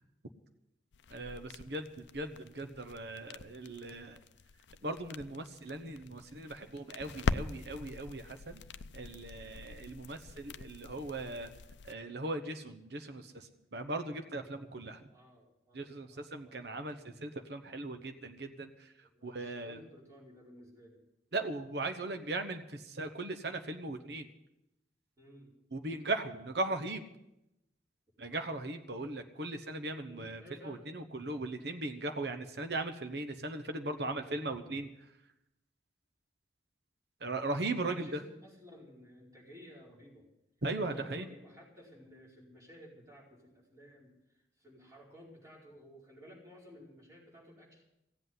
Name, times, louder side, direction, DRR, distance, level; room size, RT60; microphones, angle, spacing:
sound 1, 0.9-11.9, left 4 dB, 80° left, 0.5 m, -42 dB
voice 1, 1.1-1.9 2.1-4.2 4.8-8.6 8.9-11.5 11.9-15.0 15.7-18.7 19.2-19.8 21.3-24.3 25.7-27.0 28.2-34.9 37.2-38.1 40.6-41.2, right 2 dB, 65° right, 7 dB, 1.0 m, -38 dB
voice 2, 15.1-17.0 19.0-21.0 25.2-25.5 28.3-28.5 30.0-30.9 37.6-40.3 40.7-47.8, equal, 20° right, -4 dB, 4.7 m, -55 dB
16.5 x 8.0 x 9.5 m, 0.87 s
head